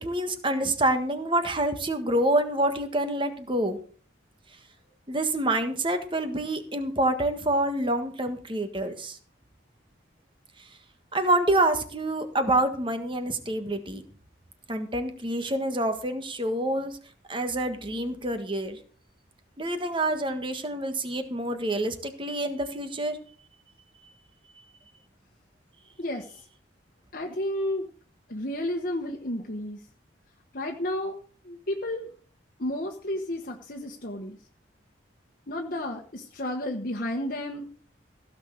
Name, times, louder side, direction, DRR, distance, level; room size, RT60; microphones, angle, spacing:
voice 1, 0.0-3.8 5.1-9.2 11.1-14.0 14.7-16.9 17.3-18.8 19.6-23.2, right 1 dB, 25° right, 8 dB, 1.5 m, -27 dB
voice 2, 26.0-26.5 27.1-27.8 28.3-29.9 30.5-32.1 32.6-34.4 35.5-37.7, left 1 dB, 50° left, 1 dB, 1.3 m, -32 dB
16.0 x 6.4 x 6.5 m, 0.44 s
head